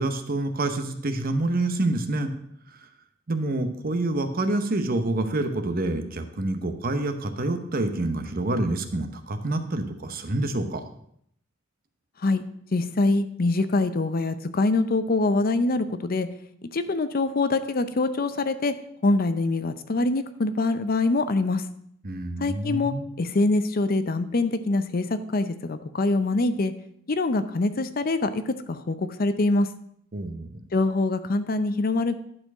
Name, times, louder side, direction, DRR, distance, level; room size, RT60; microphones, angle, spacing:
voice 1, 0.0-2.3 2.7-2.8 3.3-10.8 22.0-23.1 30.1-30.6, right 2 dB, 50° right, 7 dB, 0.9 m, -27 dB
voice 2, 12.7-16.3 16.7-18.7 19.0-21.6 22.4-25.1 25.3-26.7 27.1-28.4 28.7-29.7 30.7-32.1, left 2 dB, 50° left, 11 dB, 0.6 m, -24 dB
11.0 x 4.4 x 6.0 m, 0.70 s
head